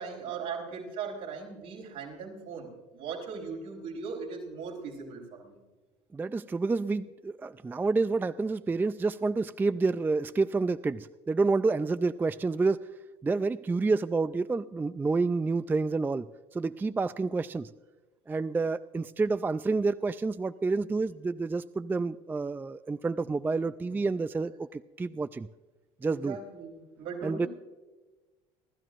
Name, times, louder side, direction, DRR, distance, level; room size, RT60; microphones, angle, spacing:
voice 1, 0.0-5.6 23.8-24.0 26.0-27.5, right 5 dB, 70° right, -1 dB, 4.1 m, -39 dB
voice 2, 6.1-12.9 13.2-17.7 18.3-25.5 26.0-26.4 27.2-27.5, right 3 dB, 15° right, 14 dB, 0.3 m, -29 dB
29.5 x 12.0 x 2.5 m, 1.2 s
hypercardioid pair, 75°, 15 cm